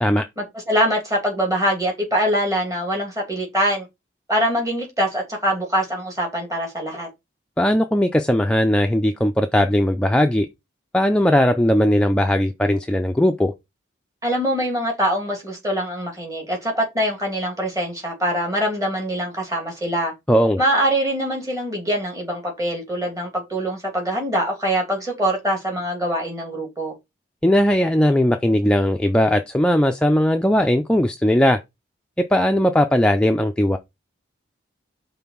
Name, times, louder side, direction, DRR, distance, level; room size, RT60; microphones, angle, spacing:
voice 1, 0.4-3.9 4.3-7.1 14.2-20.1 20.6-26.9, equal, 15° right, 2.6 m, -23 dB
voice 2, 7.6-10.5 10.9-13.5 20.3-20.6 27.4-31.6 32.2-33.8, equal, 5° left, 0.4 m, -18 dB
5.5 x 3.8 x 5.9 m
head